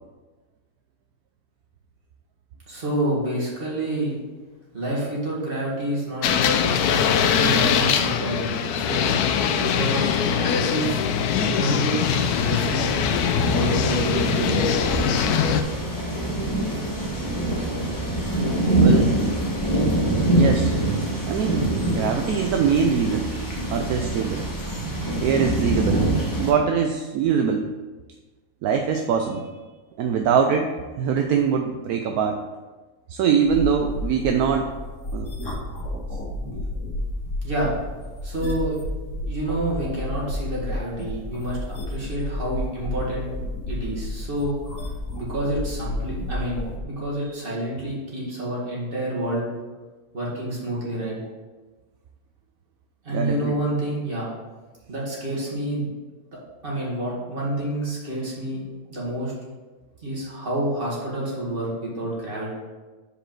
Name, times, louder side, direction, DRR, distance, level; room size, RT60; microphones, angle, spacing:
voice 1, 2.7-4.2 4.7-9.1 9.5-11.1 11.4-12.0 12.4-13.0 13.5-14.7 37.4-37.7 38.2-38.8 39.3-43.3 43.7-44.6 45.2-49.5 50.1-51.2 53.0-54.3 54.9-55.9 56.6-58.6 58.9-59.3 60.0-62.5, right 1 dB, 35° right, -6 dB, 2.3 m, -28 dB
sound 1, 6.2-15.6, left 7 dB, 80° left, 1.1 m, -22 dB
sound 2, 12.0-26.5, right 1 dB, 15° left, 1.1 m, -24 dB
voice 2, 18.8-19.1 20.3-20.8 21.2-24.4 25.2-26.1 26.3-27.7 28.6-29.5 30.0-32.4 33.1-34.7 35.1-35.3 36.4-36.6 53.1-53.6, right 7 dB, 75° right, 4 dB, 1.1 m, -23 dB
sound 3, 33.4-46.8, left 1 dB, 55° left, 1.8 m, -31 dB
5.1 x 5.0 x 5.9 m, 1.2 s
omnidirectional pair, 1.6 m